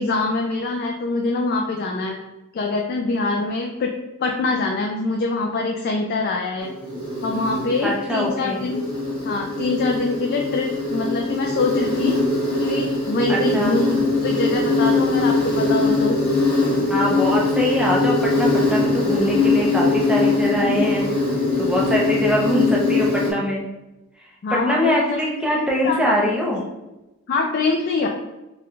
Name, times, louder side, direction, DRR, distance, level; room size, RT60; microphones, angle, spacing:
voice 1, 0.0-2.2 2.5-3.9 4.2-6.7 7.2-8.8 9.2-12.1 12.6-16.2 24.4-25.2 25.6-26.0 27.3-28.1, left 3 dB, 45° left, 1 dB, 0.3 m, -24 dB
Insect, 6.6-23.3, left 3 dB, 25° left, 1.1 m, -22 dB
voice 2, 7.8-8.6 13.3-13.8 16.9-21.1 21.6-23.6 24.5-26.6, equal, 5° right, -3 dB, 0.6 m, -23 dB
4.0 x 2.2 x 3.1 m, 1.0 s
head